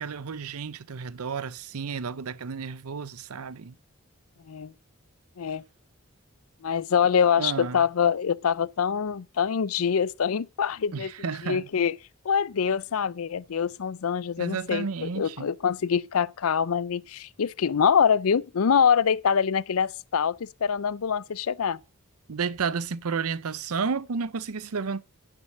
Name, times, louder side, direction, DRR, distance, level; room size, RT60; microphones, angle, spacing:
voice 1, 0.0-3.7 7.4-7.8 10.9-11.7 14.4-15.5 22.3-25.0, right 5 dB, 90° right, 0.6 m, -32 dB
voice 2, 6.6-11.1 11.4-12.0 12.2-21.8, left 7 dB, 80° left, 0.5 m, -25 dB
11.0 x 6.3 x 7.6 m
head